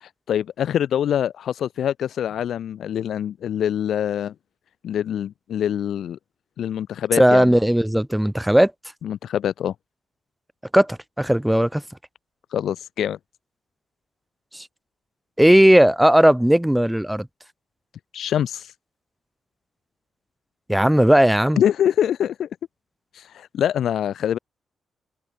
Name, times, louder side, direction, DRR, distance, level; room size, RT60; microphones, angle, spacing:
voice 1, 0.0-4.3 4.8-6.2 6.6-7.5 9.0-9.7 12.5-13.2 18.1-18.7 21.6-22.5 23.1-24.4, left 10 dB, 70° left, 0.3 m, -24 dB
voice 2, 7.2-8.7 10.7-11.8 14.5-14.6 15.4-17.3 20.7-21.6, equal, 5° right, 0.5 m, -16 dB
wide cardioid pair, 165°, 0 cm